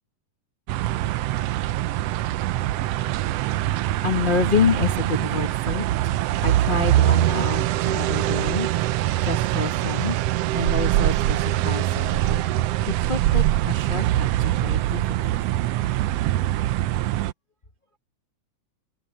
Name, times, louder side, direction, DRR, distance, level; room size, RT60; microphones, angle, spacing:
sound 1, 0.7-17.3, right 14 dB, 85° right, 1.3 m, -23 dB
voice 1, 4.0-10.2 10.5-12.4 12.9-15.1, left 4 dB, 55° left, 0.5 m, -28 dB
omnidirectional pair, 3.5 m